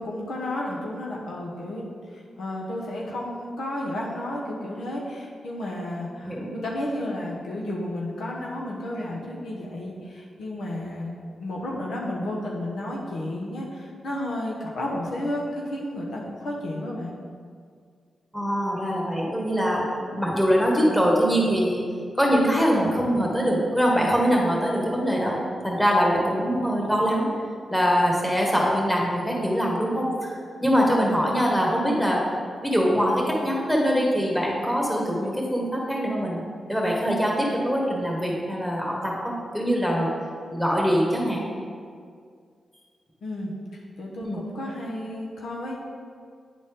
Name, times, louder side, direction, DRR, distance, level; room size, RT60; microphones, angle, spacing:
voice 1, 0.0-1.8 2.1-11.1 11.4-17.1 43.2-43.5 44.0-45.7, left 1 dB, 85° left, -3 dB, 1.0 m, -32 dB
voice 2, 18.3-19.8 20.1-21.8 22.2-25.4 25.6-27.3 27.7-32.2 32.6-36.4 36.7-40.1 40.5-41.4 44.2-44.4, equal, 10° left, -3 dB, 1.7 m, -23 dB
9.3 x 4.1 x 3.7 m, 2.1 s
cardioid pair, 65°, 0 cm